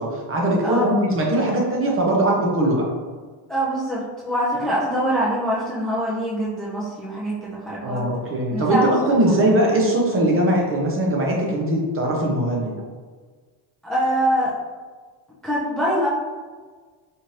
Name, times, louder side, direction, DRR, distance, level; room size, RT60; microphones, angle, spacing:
voice 1, 0.0-2.8 7.8-12.7, right 1 dB, 30° right, -2 dB, 0.7 m, -20 dB
voice 2, 0.6-0.9 3.5-8.0 8.5-8.9 13.8-14.5 15.4-16.1, equal, ahead, -8 dB, 0.4 m, -24 dB
4.4 x 2.6 x 3.1 m, 1.5 s
cardioid pair, 160°, 45 cm